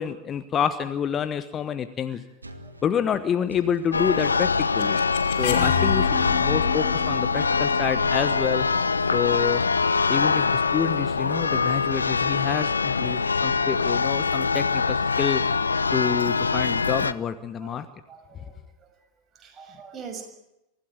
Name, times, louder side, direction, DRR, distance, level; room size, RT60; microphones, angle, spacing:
voice 1, 0.0-2.2 2.8-5.0 5.4-8.7 9.1-9.6 10.1-15.4 15.9-17.9, left 8 dB, 25° left, 11 dB, 1.2 m, -28 dB
sound 1, 2.4-4.0 5.3-8.1, right 2 dB, 80° right, 2.0 m, -45 dB
Church bell, 3.9-17.1, left 4 dB, 75° left, 0.7 m, -23 dB
sound 2, 4.0-9.9, left 10 dB, 55° left, 2.9 m, -32 dB
voice 2, 18.1-18.9 19.3-20.2, right 6 dB, 25° right, 4 dB, 6.3 m, -44 dB
24.5 x 15.5 x 9.4 m, 0.89 s
figure-of-eight pair, 90°, 0 cm